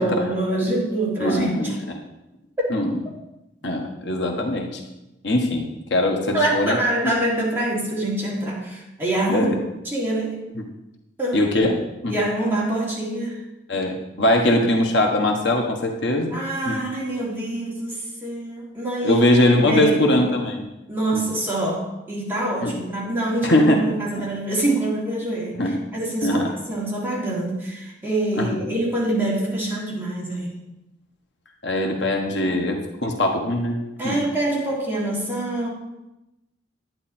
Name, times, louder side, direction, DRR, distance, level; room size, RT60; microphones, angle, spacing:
voice 1, 0.0-1.8 2.6-2.7 6.3-9.5 9.8-10.3 11.2-11.4 12.1-13.4 16.3-19.2 19.6-20.0 20.9-30.6 32.4-32.6 34.0-35.7, right 1 dB, 10° right, -6 dB, 3.3 m, -25 dB
voice 2, 1.2-1.8 2.7-3.0 3.6-4.8 5.2-6.8 9.3-9.6 11.3-12.1 13.7-16.4 16.6-16.8 19.0-20.6 21.1-21.2 22.6-22.8 23.4-24.3 25.6-25.8 26.2-26.5 28.3-28.5 31.6-34.2, left 1 dB, 65° left, 2 dB, 1.4 m, -21 dB
11.0 x 9.6 x 4.4 m, 0.96 s
head